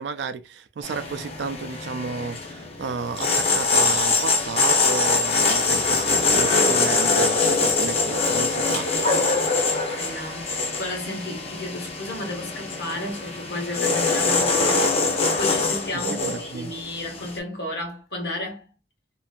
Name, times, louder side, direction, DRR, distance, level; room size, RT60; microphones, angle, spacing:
voice 1, 0.0-8.9 15.9-16.7, right 5 dB, 80° right, 0.4 m, -32 dB
sound 1, 0.8-17.4, left 3 dB, 35° left, 0.6 m, -23 dB
voice 2, 6.1-6.4 10.0-15.1 15.4-18.7, left 1 dB, 65° left, 1.0 m, -33 dB
2.6 x 2.5 x 2.2 m
head